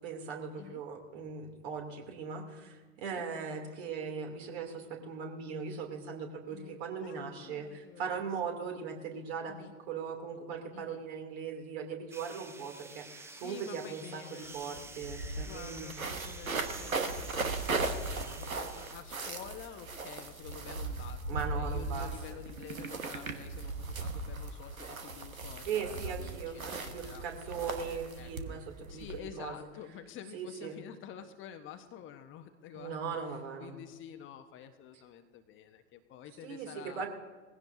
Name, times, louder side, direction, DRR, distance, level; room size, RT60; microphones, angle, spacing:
voice 1, 0.0-15.9 21.3-22.4 25.6-29.5 30.3-30.8 32.7-33.8 36.4-37.1, right 6 dB, 50° right, 2 dB, 2.9 m, -39 dB
voice 2, 6.5-8.6 9.5-9.7 10.7-11.1 13.3-14.6 15.4-27.2 27.7-28.6 28.9-33.0 33.6-37.1, left 9 dB, 30° left, 7 dB, 1.0 m, -49 dB
sound 1, 12.1-18.9, right 3 dB, 5° right, 0.6 m, -49 dB
sound 2, 14.4-14.5 14.8-29.2, right 3 dB, 85° right, 1.4 m, -38 dB
20.5 x 16.0 x 2.7 m, 1.4 s
figure-of-eight pair, 90°, 41 cm